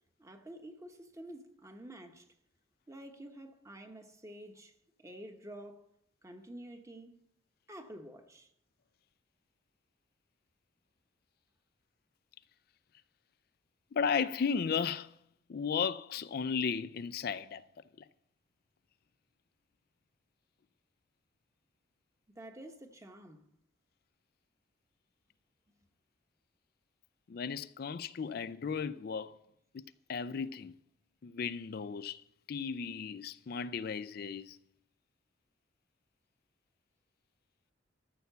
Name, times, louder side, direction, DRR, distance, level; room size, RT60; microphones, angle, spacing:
voice 1, 0.2-2.3 2.9-4.7 5.0-5.9 6.2-7.1 7.7-8.5 22.4-23.5, right 1 dB, 15° right, 1.1 m, -49 dB
voice 2, 13.9-15.1 15.5-17.6 18.0-18.1 27.3-29.3 29.7-30.8 31.2-32.2 32.5-34.6, left 6 dB, 55° left, 0.4 m, -35 dB
13.5 x 7.0 x 6.8 m
head